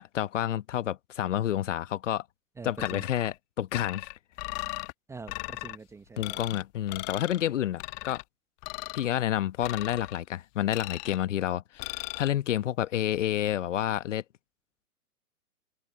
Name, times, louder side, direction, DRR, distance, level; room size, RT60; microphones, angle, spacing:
voice 1, 0.0-2.2 2.6-4.1 6.2-8.2 8.9-14.2, left 11 dB, 55° left, 1.3 m, -29 dB
voice 2, 2.6-3.0 5.1-6.4, right 4 dB, 5° right, 0.9 m, -44 dB
sound 1, 2.8-3.4 3.7-4.9 5.3-5.8 6.2-6.6 6.9-7.4 7.8-8.2 8.6-9.1 9.6-10.2 10.7-11.2 11.8-12.3, left 32 dB, 30° left, 1.5 m, -38 dB
figure-of-eight pair, 120°, 44 cm